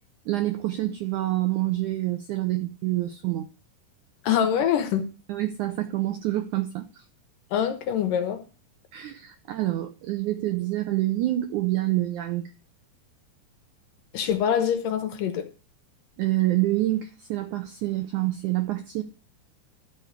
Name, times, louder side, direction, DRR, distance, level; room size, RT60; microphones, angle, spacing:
voice 1, 0.3-3.5 5.3-7.0 8.9-12.5 16.2-19.0, right 16 dB, 80° right, 1.8 m, -27 dB
voice 2, 4.2-5.1 7.5-8.4 14.1-15.5, left 8 dB, 70° left, 2.3 m, -24 dB
12.0 x 4.6 x 8.1 m
omnidirectional pair, 4.5 m